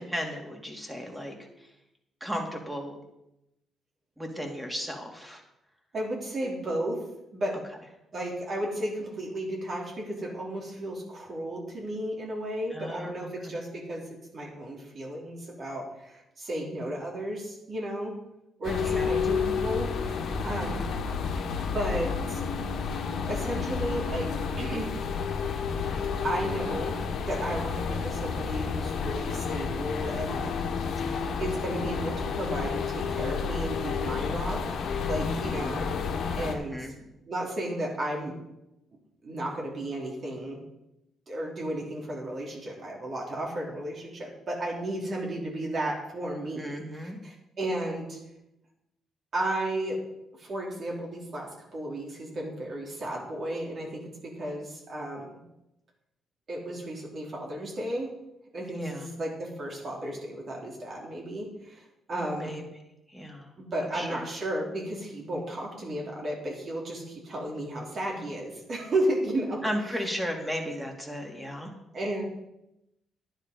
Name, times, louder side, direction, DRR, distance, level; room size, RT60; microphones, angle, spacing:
voice 1, 0.0-1.7 2.2-3.0 4.2-5.4 12.7-13.5 18.7-19.2 30.4-30.5 35.2-35.9 36.4-36.9 46.6-47.2 58.7-59.1 62.2-62.6 63.1-63.5 63.8-64.3 69.6-71.7, equal, 5° right, 2 dB, 2.7 m, -36 dB
voice 2, 5.9-7.0 7.3-7.5 8.1-14.0 14.3-18.1 18.6-20.8 21.6-22.4 23.3-24.3 24.6-25.0 26.2-30.6 31.0-36.1 36.3-36.9 37.3-38.3 39.2-40.6 41.3-48.2 49.3-50.0 50.4-55.3 56.5-58.1 58.5-62.5 63.6-70.0 71.9-72.2, right 1 dB, 45° right, -2 dB, 3.6 m, -33 dB
sound 1, 18.6-36.6, left 5 dB, 70° left, 1.8 m, -30 dB
10.5 x 10.0 x 5.3 m, 0.89 s
cardioid pair, 90°, 0 cm